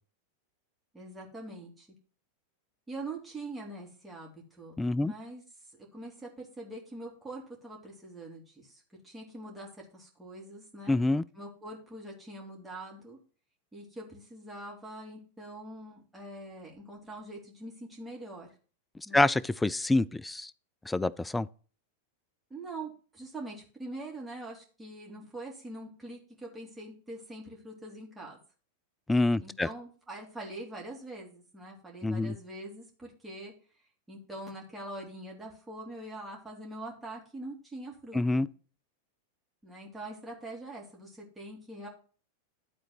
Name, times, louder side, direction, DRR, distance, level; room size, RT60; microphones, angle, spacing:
voice 1, 0.9-1.9 2.9-5.4 5.9-11.0 11.3-13.2 13.7-18.5 19.0-19.3 22.5-28.4 29.4-33.5 34.1-38.5 39.6-41.9, right 2 dB, 10° right, 2.5 m, -44 dB
voice 2, 4.8-5.1 10.9-11.2 19.1-20.5 20.9-21.5 29.1-29.7 32.0-32.3 38.1-38.5, left 2 dB, 10° left, 0.3 m, -26 dB
11.5 x 3.9 x 5.9 m
figure-of-eight pair, 90°, 0 cm